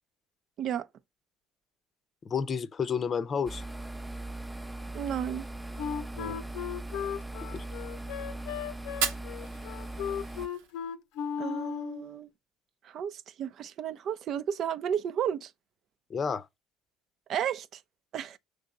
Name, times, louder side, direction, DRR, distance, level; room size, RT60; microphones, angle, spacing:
voice 1, 2.2-3.6 6.2-6.4 7.4-7.6 16.1-16.5, left 6 dB, 35° left, 0.7 m, -31 dB
sound 1, 3.5-10.5, right 2 dB, 5° right, 0.7 m, -40 dB
voice 2, 4.9-5.5 11.4-12.3 12.8-15.5 17.3-17.8 18.1-18.4, right 9 dB, 55° right, 0.6 m, -33 dB
Wind instrument woodwind instrument, 5.8-12.1, left 8 dB, 70° left, 0.7 m, -36 dB
Fire, 8.8-10.9, right 8 dB, 80° right, 1.1 m, -36 dB
6.7 x 3.4 x 5.3 m
hypercardioid pair, 70°, 0 cm